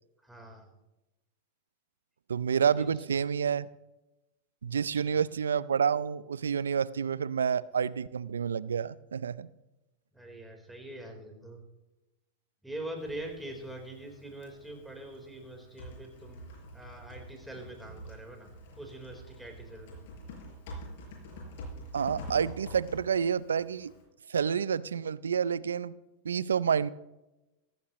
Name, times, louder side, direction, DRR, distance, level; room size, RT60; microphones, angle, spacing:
voice 1, 0.2-0.7 2.7-3.0 4.9-5.2 10.1-11.6 12.6-16.5 16.7-18.5 18.8-20.0, right 1 dB, 5° right, 2 dB, 4.0 m, -43 dB
voice 2, 2.3-3.7 4.6-9.5 21.9-23.9 24.3-25.9 26.2-26.9, right 7 dB, 90° right, 19 dB, 0.4 m, -29 dB
Typing, 13.0-24.0, equal, 65° left, 5.8 m, -47 dB
16.0 x 15.0 x 3.1 m, 0.98 s
hypercardioid pair, 105°, 0 cm